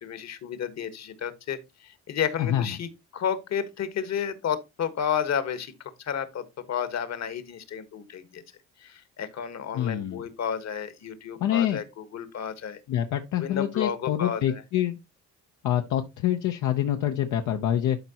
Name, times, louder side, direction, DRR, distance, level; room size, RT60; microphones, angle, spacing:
voice 1, 0.0-5.7 6.0-8.4 8.8-12.8 13.4-14.6, left 8 dB, 60° left, 1.4 m, -32 dB
voice 2, 9.7-10.2 11.4-11.8 12.9-15.0 15.6-18.0, left 11 dB, 80° left, 0.7 m, -26 dB
12.0 x 4.6 x 2.9 m
cardioid pair, 90°, 30 cm